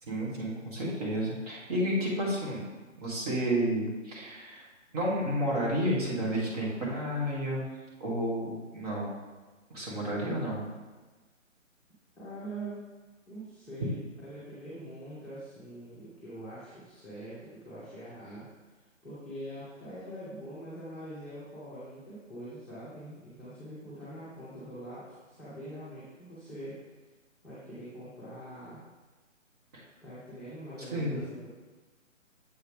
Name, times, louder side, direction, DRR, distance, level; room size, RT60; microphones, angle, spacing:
voice 1, 0.0-2.7 3.0-4.7 4.9-7.7 8.0-9.1 9.7-10.6 29.7-29.8 30.8-31.2, equal, 30° right, -4 dB, 1.5 m, -31 dB
voice 2, 12.2-12.8 13.3-18.5 19.0-26.8 27.4-28.8 30.0-31.5, right 1 dB, 5° left, -14 dB, 1.0 m, -43 dB
7.5 x 4.8 x 3.3 m, 1.3 s
figure-of-eight pair, 140°, 39 cm